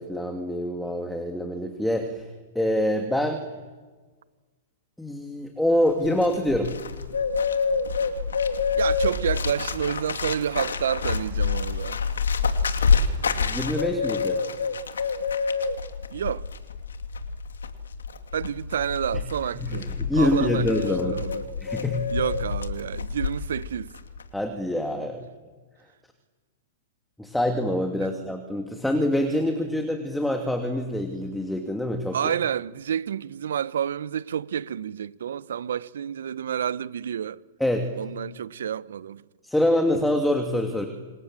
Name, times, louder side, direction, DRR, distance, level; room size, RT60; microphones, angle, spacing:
voice 1, 0.0-2.3 2.5-3.4 5.0-6.7 13.3-14.4 19.6-21.2 21.6-22.0 24.3-25.2 27.2-32.3 37.6-37.9 39.4-40.9, left 1 dB, 5° left, 2.9 m, -25 dB
Bird, 5.9-23.7 23.9-24.3, left 5 dB, 80° left, 2.6 m, -27 dB
voice 2, 8.8-12.0 16.1-16.5 18.3-19.9 20.2-21.5 22.1-23.9 28.0-28.1 32.1-37.4 37.9-39.2, right 9 dB, 70° right, 1.0 m, -29 dB
28.5 x 25.5 x 7.6 m
hypercardioid pair, 115°, 0 cm